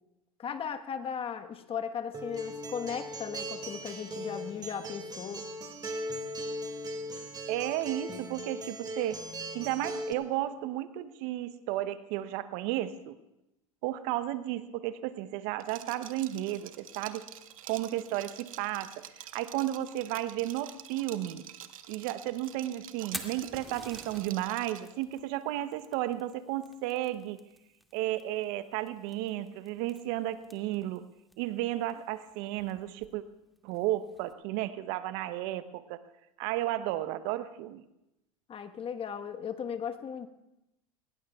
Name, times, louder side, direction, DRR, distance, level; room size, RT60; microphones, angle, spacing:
voice 1, 0.4-5.5 38.5-40.3, left 7 dB, 30° left, 8 dB, 1.3 m, -37 dB
Acoustic guitar, 2.1-10.1, right 1 dB, 25° right, 2.3 m, -39 dB
voice 2, 7.5-9.2 9.5-13.2 13.8-17.2 17.7-21.4 21.9-27.4 27.9-31.0 31.4-33.2 33.6-36.0 36.4-37.8, right 14 dB, 60° right, 13 dB, 0.9 m, -33 dB
Liquid, 15.6-24.9, right 11 dB, 80° right, 1.0 m, -48 dB
Fire, 22.9-34.3, equal, ahead, 2.3 m, -51 dB
23.0 x 20.5 x 2.4 m, 0.91 s
hypercardioid pair, 90°, 17 cm